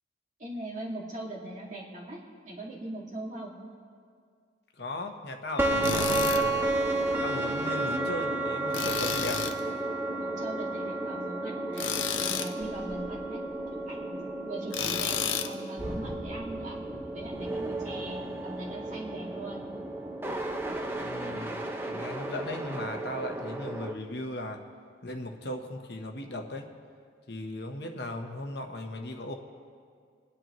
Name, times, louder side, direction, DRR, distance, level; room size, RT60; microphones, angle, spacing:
voice 1, 0.4-2.2 2.4-3.5 10.2-13.4 13.9-16.8 17.1-19.7, right 1 dB, 40° right, -3 dB, 2.2 m, -40 dB
voice 2, 4.8-6.6 7.2-9.4 21.0-21.6 21.9-24.6 25.0-26.7 27.3-29.3, left 1 dB, 55° left, 4 dB, 1.0 m, -37 dB
sound 1, 5.6-23.9, right 2 dB, 10° right, 0.6 m, -32 dB
Tools, 5.8-6.4 8.7-9.6 11.8-12.5 14.7-15.5, left 8 dB, 85° left, 0.7 m, -31 dB
27.0 x 9.8 x 3.1 m, 2.1 s
head